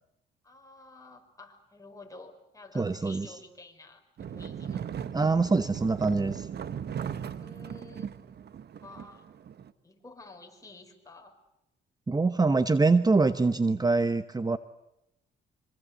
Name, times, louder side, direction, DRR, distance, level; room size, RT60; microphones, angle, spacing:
voice 1, 0.4-4.0 4.3-4.8 7.2-8.1 8.8-9.2 9.8-11.3, left 3 dB, 15° left, 3 dB, 6.0 m, -50 dB
voice 2, 2.7-3.4 5.1-6.5 12.1-14.6, right 3 dB, 20° right, 12 dB, 1.0 m, -24 dB
sound 1, 4.2-9.7, right 8 dB, 55° right, 1.4 m, -38 dB
26.0 x 25.0 x 8.3 m, 0.84 s
cardioid pair, 90°, 20 cm